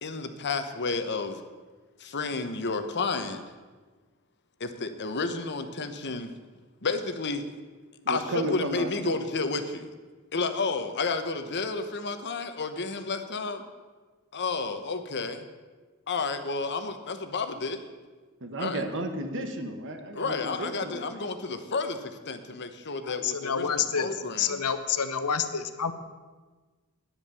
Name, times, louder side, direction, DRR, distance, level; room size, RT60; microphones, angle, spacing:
voice 1, 0.0-1.4 2.0-3.4 4.6-6.3 6.8-7.4 8.1-9.9 10.3-13.6 14.3-15.4 16.1-17.8 18.6-18.8 20.1-24.6, left 4 dB, 50° left, 8 dB, 1.1 m, -31 dB
voice 2, 8.0-9.2 18.4-21.2, right 1 dB, 60° right, 6 dB, 1.5 m, -33 dB
voice 3, 23.0-24.1 24.4-25.9, left 7 dB, 90° left, 10 dB, 1.0 m, -28 dB
10.5 x 10.0 x 7.0 m, 1.4 s
head